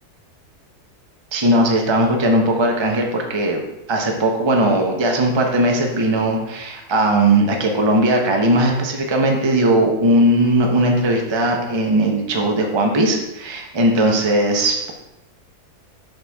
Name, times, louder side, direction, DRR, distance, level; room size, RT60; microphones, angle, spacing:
voice 1, 1.3-3.6 3.9-14.9, right 1 dB, 20° right, 2 dB, 0.8 m, -18 dB
7.9 x 6.2 x 3.5 m, 0.89 s
omnidirectional pair, 1.7 m